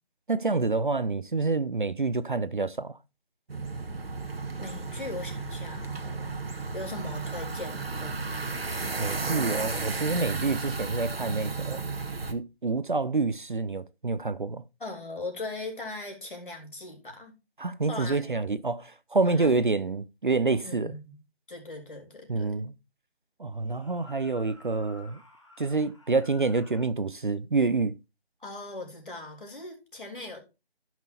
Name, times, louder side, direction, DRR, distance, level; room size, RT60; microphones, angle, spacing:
voice 1, 0.3-3.0 9.0-11.8 12.3-14.6 17.6-20.9 22.3-22.7 23.4-25.2 25.6-27.9, right 3 dB, 50° right, 0.5 m, -27 dB
sound 1, 3.5-12.3, right 3 dB, 70° right, 1.2 m, -34 dB
voice 2, 4.6-6.4 6.7-8.6 14.8-17.3 17.8-18.5 19.3-19.5 20.6-21.2 21.5-22.7 28.4-30.4, left 2 dB, 55° left, 3.4 m, -40 dB
sound 2, 23.5-27.0, left 2 dB, 30° left, 1.1 m, -54 dB
14.5 x 6.1 x 2.6 m
figure-of-eight pair, 175°, 32 cm